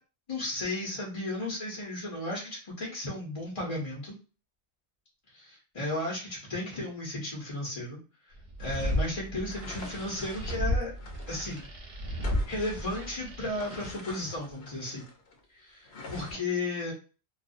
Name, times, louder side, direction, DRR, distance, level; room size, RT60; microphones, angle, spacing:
voice 1, 0.3-4.1 5.3-8.0 8.6-10.9 11.3-11.7 12.2-15.0 15.5-16.9, left 2 dB, 35° left, -4 dB, 0.6 m, -34 dB
sound 1, 8.4-13.9, equal, 60° right, 0.9 m, -33 dB
sound 2, 8.6-11.7 12.1-15.4 15.8-16.3, left 2 dB, 65° left, 0.9 m, -46 dB
2.4 x 2.1 x 2.5 m, 0.35 s
omnidirectional pair, 1.2 m